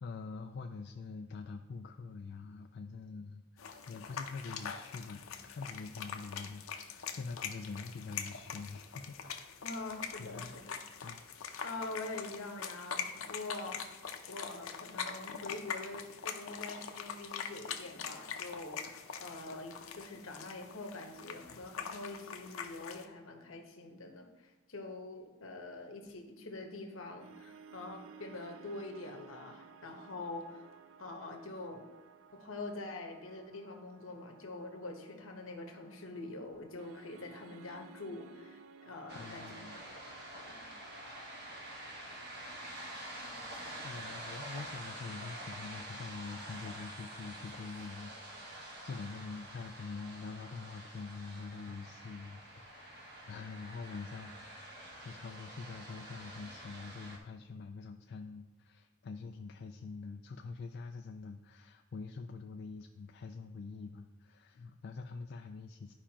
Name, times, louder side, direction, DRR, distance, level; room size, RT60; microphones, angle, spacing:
voice 1, 0.0-9.8 10.2-10.7 11.0-11.2 39.1-39.8 43.8-65.9, left 4 dB, 55° left, 4 dB, 0.3 m, -45 dB
sound 1, 3.6-23.1, left 6 dB, 90° left, 0.6 m, -43 dB
voice 2, 9.6-10.8 11.6-30.7 31.0-31.9 32.3-39.8 40.3-40.7, left 2 dB, 70° left, 3 dB, 1.1 m, -45 dB
sound 2, 27.2-43.5, right 6 dB, 70° right, 0.4 m, -58 dB
sound 3, 39.1-57.2, right 1 dB, 50° right, 1.3 m, -47 dB
12.0 x 4.9 x 2.9 m, 1.1 s
head